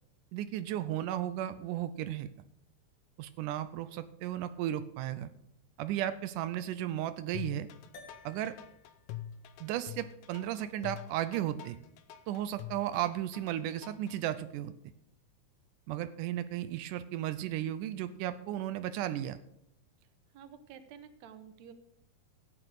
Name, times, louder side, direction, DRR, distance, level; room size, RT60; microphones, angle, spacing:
voice 1, 0.3-2.3 3.2-5.3 5.8-7.7 8.2-8.5 9.6-11.8 12.3-14.7 15.9-19.4, right 12 dB, 85° right, 11 dB, 2.2 m, -35 dB
sound 1, 7.3-14.2, left 11 dB, 80° left, 2.2 m, -45 dB
sound 2, 7.9-12.5, left 3 dB, 60° left, 3.0 m, -59 dB
voice 2, 20.3-21.7, right 8 dB, 65° right, 10 dB, 2.2 m, -51 dB
14.5 x 9.1 x 4.8 m, 0.76 s
omnidirectional pair, 3.6 m